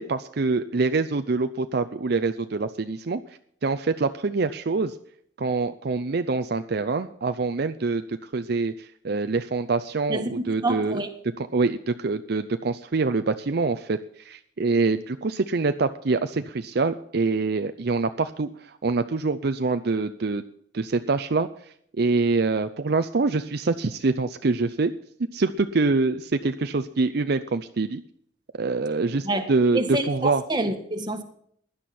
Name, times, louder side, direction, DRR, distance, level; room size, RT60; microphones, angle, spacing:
voice 1, 0.0-3.2 3.6-5.0 5.4-11.0 11.4-20.4 20.7-21.5 22.0-24.9 25.3-28.0 28.5-29.8 30.1-30.4, right 3 dB, 60° right, 0.6 m, -25 dB
voice 2, 10.1-11.1 29.2-29.5 29.7-31.2, right 2 dB, 25° right, 1.7 m, -27 dB
16.5 x 11.0 x 4.3 m
head